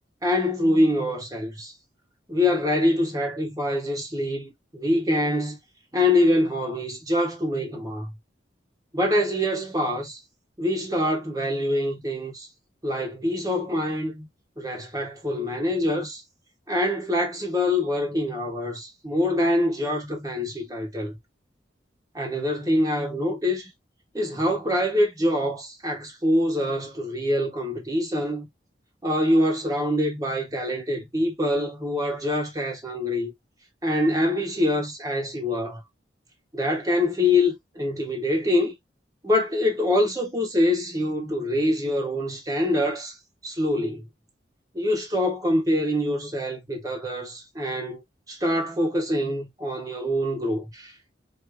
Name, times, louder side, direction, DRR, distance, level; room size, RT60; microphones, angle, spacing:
voice 1, 0.0-1.7 2.3-5.6 5.9-8.1 8.9-10.2 10.6-12.5 12.8-14.3 14.6-16.2 16.7-21.1 22.1-23.7 24.1-28.5 29.0-33.3 33.8-35.8 36.5-38.7 39.2-43.2 43.4-44.1 44.7-50.9, left 1 dB, 20° right, 1.4 m, -25 dB
4.8 x 3.0 x 2.7 m
head